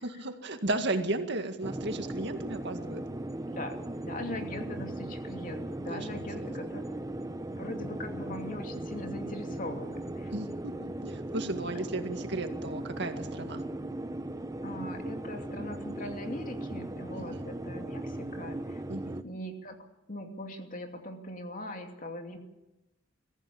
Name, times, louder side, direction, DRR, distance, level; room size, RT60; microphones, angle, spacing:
voice 1, 0.0-3.0 5.9-6.5 10.3-13.6 17.1-17.4 18.9-19.2, right 2 dB, 65° right, 6 dB, 2.0 m, -35 dB
sound 1, 1.6-19.2, right 1 dB, 20° right, 0.9 m, -38 dB
voice 2, 4.1-6.8 7.5-10.3 11.7-11.8 14.6-18.8 19.2-19.8 20.1-22.4, left 1 dB, 45° left, 4 dB, 2.8 m, -41 dB
23.0 x 14.5 x 8.6 m, 0.95 s
head